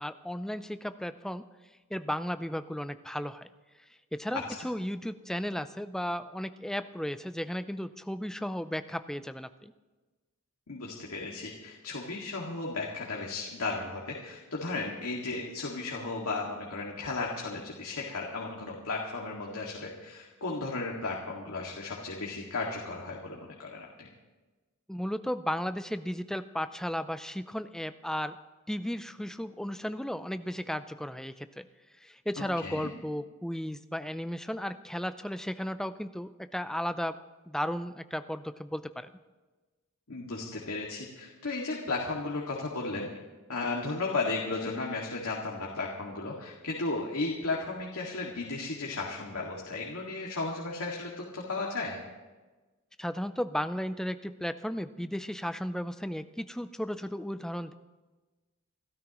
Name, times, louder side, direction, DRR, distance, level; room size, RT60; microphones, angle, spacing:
voice 1, 0.0-1.5 1.9-3.5 4.1-9.7 24.9-28.4 28.7-31.7 32.0-37.1 37.5-39.1 53.0-57.7, equal, ahead, 11 dB, 0.4 m, -34 dB
voice 2, 10.7-24.1 32.4-32.9 40.1-43.1 43.5-52.0, left 3 dB, 85° left, -2 dB, 2.1 m, -35 dB
28.5 x 13.0 x 3.0 m, 1.2 s
head